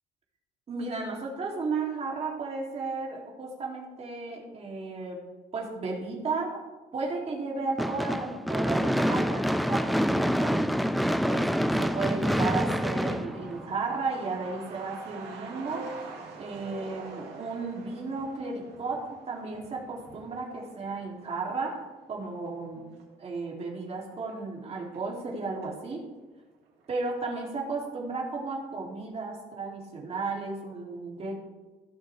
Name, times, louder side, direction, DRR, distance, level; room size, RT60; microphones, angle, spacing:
voice 1, 0.7-5.2 5.5-6.6 6.9-10.6 11.2-15.9 16.4-22.9 23.2-26.1 26.9-31.3, right 3 dB, 40° right, -1 dB, 2.6 m, -34 dB
Gunshot gunfire / Fireworks, 7.8-14.0, equal, ahead, 0.3 m, -26 dB
Truck, 10.6-25.8 26.1-26.2 26.5-27.4 27.7-27.8 28.1-28.5, right 3 dB, 75° right, 2.6 m, -47 dB
16.0 x 6.7 x 3.3 m, 1.3 s
cardioid pair, 110°, 17 cm